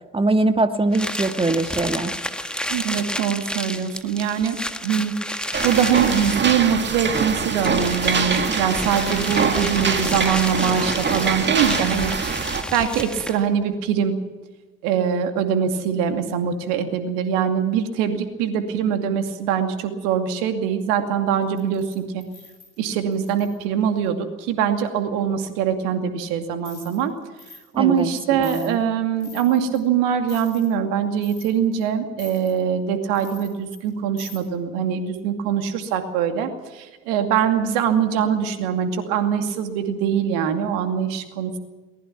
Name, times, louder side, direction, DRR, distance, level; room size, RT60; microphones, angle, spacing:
voice 1, 0.1-2.2 27.7-28.8, right 2 dB, 15° right, 8 dB, 1.9 m, -22 dB
sound 1, 0.9-13.5, left 1 dB, 5° left, 1.7 m, -31 dB
voice 2, 2.7-12.1 12.7-14.2 14.8-22.2 22.8-27.1 27.8-41.6, right 8 dB, 65° right, 7 dB, 2.5 m, -23 dB
sound 2, 5.5-12.6, right 5 dB, 30° right, 2.2 m, -24 dB
sound 3, 21.5-23.6 26.6-27.0 27.4-27.6 28.0-28.1 28.4-28.7 29.2-29.8 30.3-30.7 31.2-31.8 32.2-32.5 33.2-33.9 34.2-34.4, left 4 dB, 90° left, 4.4 m, -44 dB
22.5 x 19.5 x 6.0 m, 1.3 s
figure-of-eight pair, 50°, 35 cm